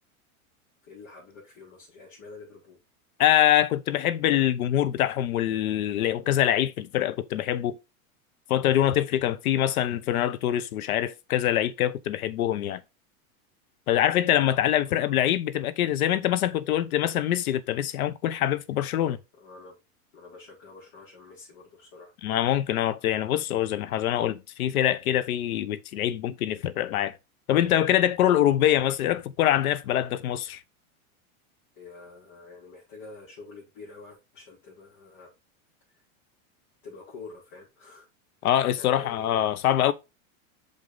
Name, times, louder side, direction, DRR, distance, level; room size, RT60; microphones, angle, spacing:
voice 1, 0.8-2.8 14.8-15.2 19.4-19.7 20.1-22.1 31.7-35.3 35.9-36.0 36.8-38.1 38.4-39.4, left 3 dB, 50° left, 4.9 m, -47 dB
voice 2, 3.2-7.8 8.5-12.8 13.9-19.2 22.2-27.2 27.5-30.6 38.4-39.9, left 12 dB, 85° left, 1.0 m, -24 dB
6.6 x 5.4 x 3.9 m
supercardioid pair, 130°, 42 cm